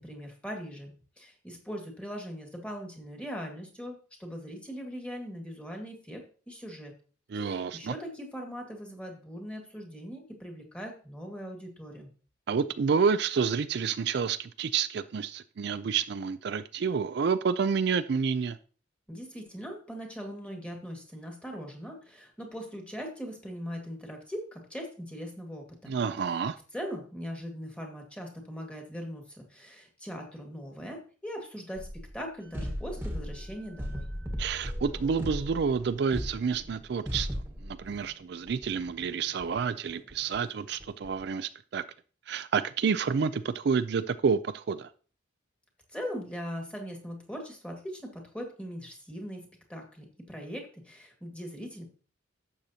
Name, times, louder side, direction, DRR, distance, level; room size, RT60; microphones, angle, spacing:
voice 1, 0.0-6.9 7.3-12.1 19.1-25.9 26.3-26.4 26.7-34.1 45.9-51.8, equal, 5° left, 1.8 m, -40 dB
voice 2, 7.3-7.9 12.5-18.6 25.9-26.6 34.4-37.3 37.6-41.8 42.3-44.9, right 6 dB, 60° right, 0.4 m, -29 dB
sound 1, 31.8-32.2 32.5-38.2 38.5-41.3, equal, 10° right, 1.3 m, -37 dB
11.5 x 7.6 x 2.8 m
head